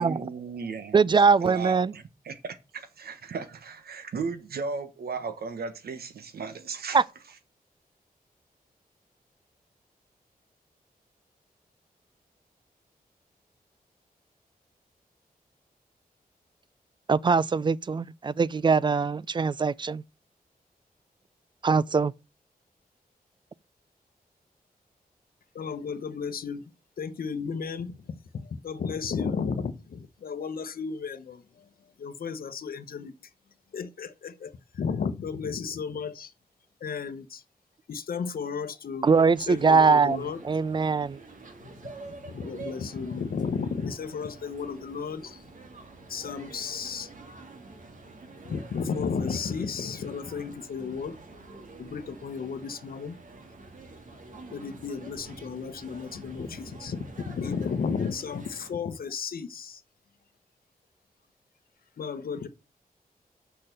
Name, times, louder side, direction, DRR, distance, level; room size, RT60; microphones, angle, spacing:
voice 1, 0.0-1.0 1.4-7.0, right 5 dB, 90° right, 1.3 m, -36 dB
voice 2, 0.9-1.9 6.9-7.0 17.1-20.0 21.6-22.1 39.0-41.2, right 5 dB, 30° right, 0.4 m, -22 dB
voice 3, 25.5-26.6 27.0-28.0 28.3-31.6 32.0-33.1 33.7-36.3 36.8-37.4 37.9-39.1 39.5-40.4 42.3-45.4 46.1-47.1 48.5-51.2 51.8-53.2 54.5-59.8 62.0-62.5, left 5 dB, 70° left, 1.0 m, -33 dB
sound 1, 39.0-58.7, right 3 dB, 55° right, 2.3 m, -47 dB
6.5 x 5.7 x 6.7 m
wide cardioid pair, 135°, 16 cm